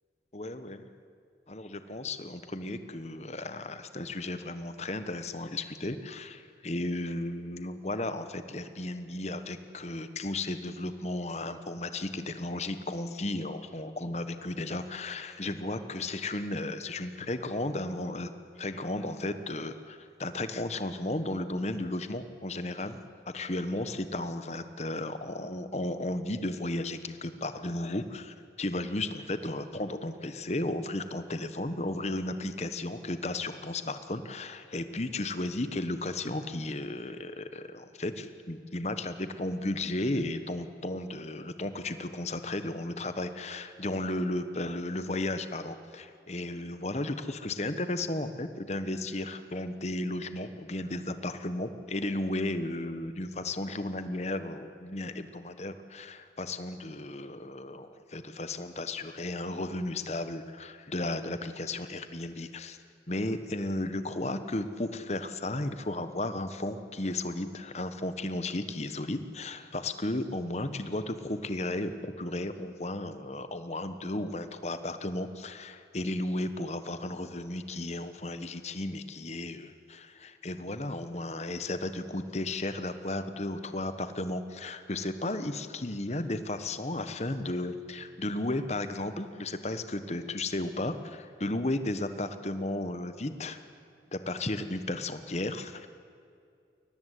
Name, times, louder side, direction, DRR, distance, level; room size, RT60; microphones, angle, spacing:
voice 1, 0.3-0.8 1.5-18.3 18.6-23.0 23.3-62.8 63.1-93.6 94.1-95.9, left 2 dB, 40° left, 10 dB, 1.2 m, -34 dB
22.5 x 19.0 x 8.3 m, 2.4 s
head